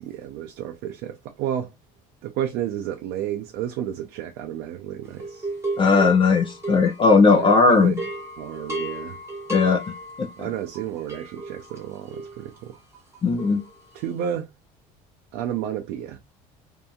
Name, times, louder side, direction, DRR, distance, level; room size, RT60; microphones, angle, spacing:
voice 1, 0.0-1.7 2.2-5.5 7.4-8.0 8.4-9.2 10.4-12.8 13.9-14.5 15.3-16.2, right 10 dB, 75° right, 0.5 m, -31 dB
sound 1, 5.2-7.5 7.8-14.2, right 2 dB, 15° right, 1.1 m, -35 dB
voice 2, 5.8-8.0 9.5-9.8 10.2-10.3 13.2-13.6, left 4 dB, 30° left, 0.5 m, -17 dB
2.7 x 2.6 x 2.3 m
supercardioid pair, 100°, 16 cm